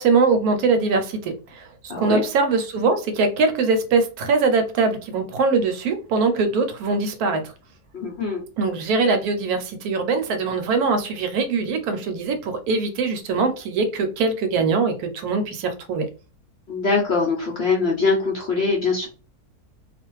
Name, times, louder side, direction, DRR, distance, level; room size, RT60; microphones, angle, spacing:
voice 1, 0.0-1.6 2.0-7.4 8.6-16.1, right 4 dB, 75° right, 1.0 m, -22 dB
voice 2, 1.9-2.2 7.9-8.4 16.7-19.1, left 4 dB, 55° left, 0.8 m, -22 dB
2.4 x 2.4 x 3.0 m
omnidirectional pair, 1.7 m